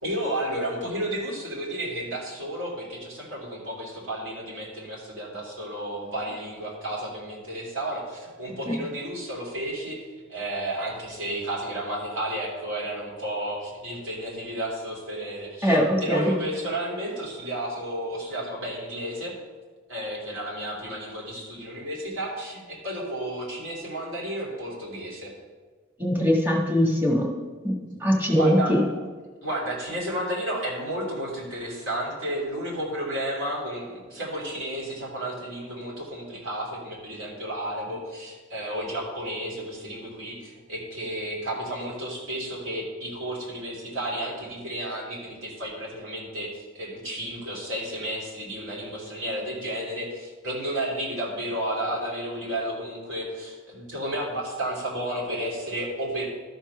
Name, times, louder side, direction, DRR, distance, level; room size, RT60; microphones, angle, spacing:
voice 1, 0.0-19.3 19.9-25.3 28.4-28.8 29.4-56.3, right 1 dB, 85° right, -3 dB, 3.0 m, -32 dB
voice 2, 15.6-16.3 26.0-27.3 27.6-27.7 28.0-28.8, equal, 10° right, -2 dB, 1.5 m, -21 dB
12.5 x 4.5 x 5.6 m, 1.4 s
head